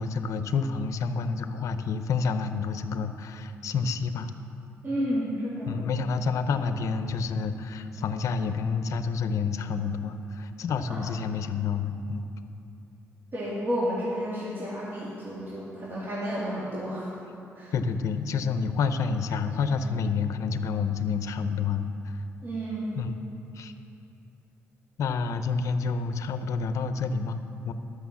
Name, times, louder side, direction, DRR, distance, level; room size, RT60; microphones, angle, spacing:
voice 1, 0.0-4.3 5.7-12.3 17.7-22.2 23.0-23.1 23.5-23.7 25.0-27.7, left 5 dB, 75° left, 9 dB, 0.6 m, -29 dB
voice 2, 4.8-5.8 10.9-11.0 13.3-17.1 17.6-17.7 22.4-23.0, equal, 40° right, -8 dB, 2.3 m, -31 dB
12.0 x 6.4 x 7.1 m, 2.7 s
cardioid pair, 100°, 5 cm